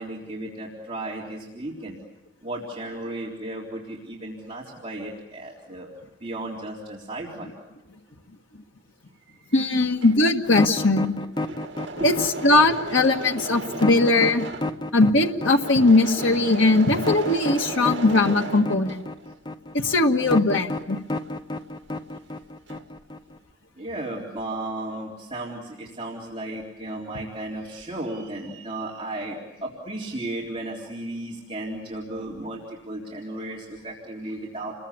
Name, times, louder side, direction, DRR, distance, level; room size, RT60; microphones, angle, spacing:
voice 1, 0.0-2.0 2.4-5.9 6.2-7.5 11.4-11.5 12.0-12.1 12.5-13.1 13.7-13.8 14.5-14.9 15.4-15.5 23.8-34.7, right 1 dB, 30° right, -4 dB, 3.8 m, -35 dB
voice 2, 9.5-11.1 12.0-14.5 14.9-19.0 19.7-21.0, left 2 dB, 80° left, 3 dB, 1.7 m, -20 dB
Engine / Mechanisms, 9.7-19.4 19.7-22.1 22.3-23.0, right 3 dB, 65° right, 2.3 m, -37 dB
sound 1, 10.5-23.4, left 2 dB, 25° left, 0.9 m, -31 dB
30.0 x 22.0 x 8.5 m, 1.0 s
head